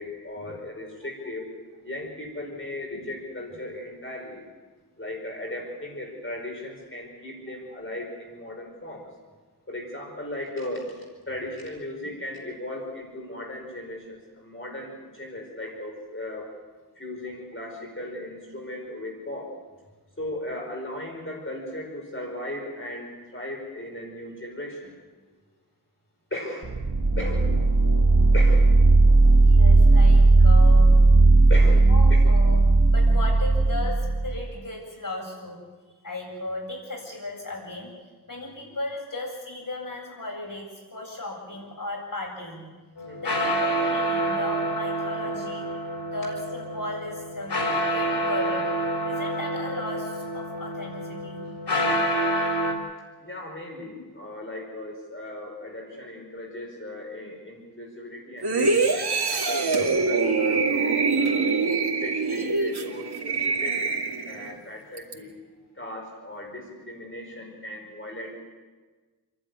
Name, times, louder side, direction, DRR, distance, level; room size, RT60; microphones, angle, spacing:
voice 1, 0.0-4.4 5.0-9.1 9.7-16.5 17.0-19.5 20.2-25.0 26.3-26.7 27.2-27.5 28.3-28.7 31.5-31.8 32.1-32.2 43.1-43.2 53.2-59.4 59.7-61.4 62.0-65.3 65.7-68.4, left 1 dB, 30° left, -1 dB, 5.0 m, -37 dB
sound 1, 26.6-34.4, right 2 dB, 55° right, 1.5 m, -16 dB
voice 2, 29.4-31.0 31.5-35.6 36.0-37.9 38.3-42.7 43.2-45.7 46.0-48.6 49.0-51.4 58.6-58.7, left 2 dB, 55° left, -1 dB, 7.9 m, -36 dB
sound 2, 43.0-52.7, right 1 dB, 90° left, 3.9 m, -28 dB
sound 3, 58.4-64.5 65.0-65.1, right 4 dB, 75° right, 2.4 m, -24 dB
29.0 x 12.0 x 9.7 m, 1.3 s
wide cardioid pair, 80°, 39 cm